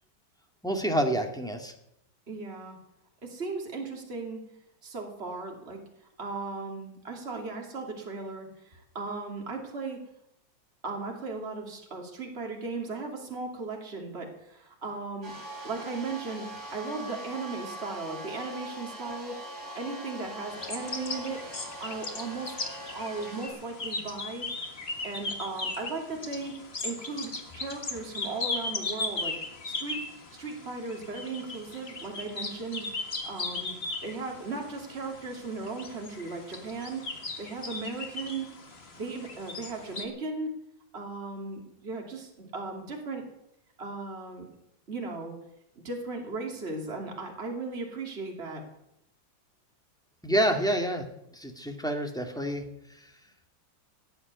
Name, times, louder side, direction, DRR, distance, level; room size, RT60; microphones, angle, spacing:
voice 1, 0.6-1.7 50.2-51.0 51.3-52.6, right 1 dB, ahead, 3 dB, 1.8 m, -28 dB
voice 2, 2.3-2.8 3.2-4.5 4.8-5.8 6.2-10.0 10.8-15.3 15.6-19.4 19.7-21.4 21.8-22.5 22.9-24.5 25.0-26.5 26.8-29.4 29.6-30.0 30.3-32.9 33.2-33.7 34.0-37.0 37.4-38.5 39.0-40.5 40.9-43.2 43.8-44.5 44.9-45.4 45.8-48.6, right 3 dB, 30° right, 1 dB, 2.9 m, -37 dB
sound 1, 15.2-23.5, right 1 dB, 50° right, 5.8 m, -42 dB
sound 2, 20.5-40.1, left 3 dB, 35° left, 1.9 m, -38 dB
18.5 x 8.0 x 9.4 m, 0.81 s
omnidirectional pair, 2.2 m